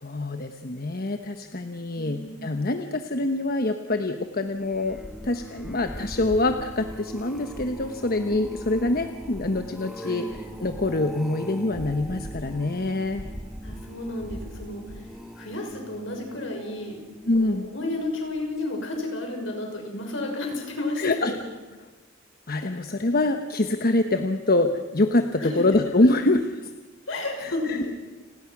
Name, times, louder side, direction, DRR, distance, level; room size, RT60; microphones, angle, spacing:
voice 1, 0.0-13.2 17.3-17.7 21.0-21.3 22.5-26.7 27.4-27.9, left 2 dB, 45° left, 7 dB, 1.1 m, -25 dB
voice 2, 1.9-2.5 10.0-10.3 13.6-15.0 15.4-17.0 17.4-21.4 25.4-25.6 27.1-27.9, left 2 dB, 70° left, 2 dB, 6.3 m, -32 dB
sound 1, 4.5-17.8 18.4-18.7 19.0-19.1, equal, ahead, 2.0 m, -40 dB
30.0 x 20.5 x 6.1 m, 1.2 s
head